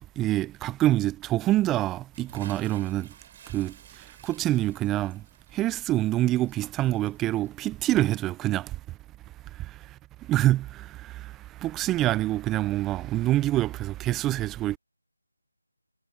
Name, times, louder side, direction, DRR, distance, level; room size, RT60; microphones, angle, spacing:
voice 1, 0.2-3.1 3.5-3.7 4.2-5.2 5.5-8.7 9.6-9.7 10.3-11.3 11.6-14.8, right 15 dB, 10° right, 0.5 m, -26 dB
Bathtub (filling or washing) / Splash splatter, 2.1-8.7, right 9 dB, 25° right, 7.9 m, -52 dB
figure-of-eight pair, 160°, 0 cm